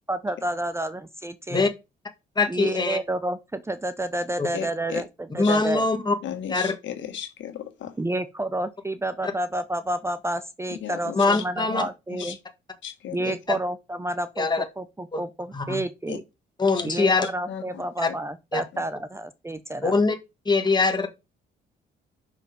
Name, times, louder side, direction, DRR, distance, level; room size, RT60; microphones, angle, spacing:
voice 1, 0.1-1.7 2.5-5.9 8.0-12.4 13.1-16.2 16.8-20.0, right 1 dB, 15° right, 0.6 m, -30 dB
voice 2, 2.4-3.0 4.4-4.5 5.4-6.1 6.5-6.7 11.1-11.8 13.3-13.6 14.4-14.6 15.1-15.2 15.5-15.8 16.6-17.3 18.5-18.6 19.8-20.1 20.4-21.1, left 3 dB, 20° left, 1.6 m, -22 dB
voice 3, 4.5-5.0 5.4-5.6 6.2-7.9 10.7-12.4 12.8-13.3 16.1-16.2 17.5-18.1 18.7-18.8, left 9 dB, 70° left, 1.7 m, -36 dB
5.8 x 5.0 x 5.1 m
cardioid pair, 90°, 20 cm